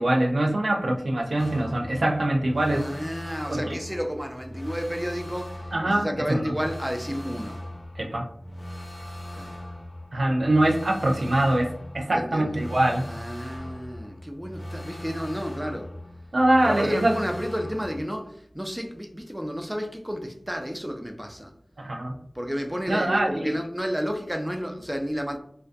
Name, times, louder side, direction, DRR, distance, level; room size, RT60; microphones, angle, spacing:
voice 1, 0.0-2.9 3.5-3.8 5.7-6.6 8.0-8.3 10.1-13.1 16.3-17.2 21.8-22.1 22.9-23.6, right 1 dB, 90° right, 1 dB, 0.4 m, -23 dB
sound 1, 1.4-18.0, left 1 dB, 55° left, 0.5 m, -39 dB
voice 2, 2.7-7.6 9.4-9.6 12.1-12.6 13.1-15.9 16.6-21.5 22.3-25.4, equal, 10° right, 4 dB, 0.4 m, -31 dB
2.4 x 2.2 x 2.5 m, 0.65 s
wide cardioid pair, 50°, 0 cm